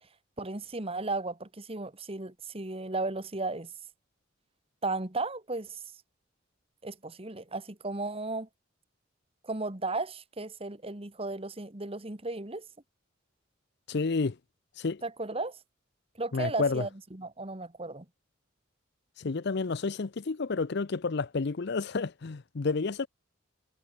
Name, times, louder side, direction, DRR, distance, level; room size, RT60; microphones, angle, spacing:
voice 1, 0.4-3.7 4.8-5.8 6.8-8.5 9.4-12.6 15.0-15.6 16.2-18.0, right 2 dB, 30° right, 1.7 m, -35 dB
voice 2, 13.9-14.4 14.8-15.0 16.3-16.9 19.2-23.1, left 4 dB, 55° left, 0.6 m, -30 dB
head